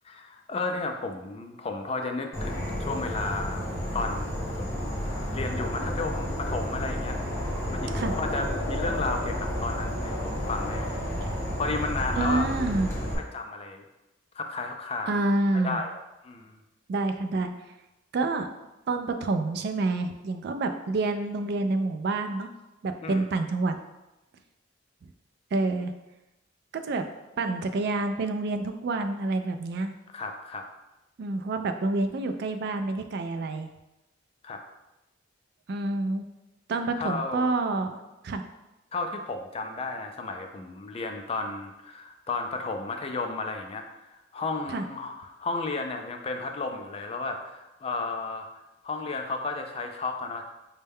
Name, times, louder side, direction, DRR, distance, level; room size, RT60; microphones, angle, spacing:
voice 1, 0.0-3.7 3.9-7.2 7.7-11.0 11.6-12.5 13.2-13.8 14.3-15.2 15.5-16.6 23.0-23.2 30.1-30.6 34.4-34.6 37.0-37.6 38.9-48.5 48.8-50.4, left 3 dB, 30° left, 4 dB, 0.3 m, -33 dB
Insect / Frog, 2.3-13.1, equal, 15° left, 0.8 m, -31 dB
voice 2, 12.2-12.9 15.1-15.8 16.9-17.5 18.1-18.5 18.9-22.5 22.8-23.7 25.5-25.9 26.7-27.0 27.4-29.9 31.2-33.7 35.7-36.2 36.7-38.0 38.2-38.4 44.7-44.8, right 2 dB, 55° right, 7 dB, 0.3 m, -28 dB
5.3 x 2.2 x 3.4 m, 0.99 s
head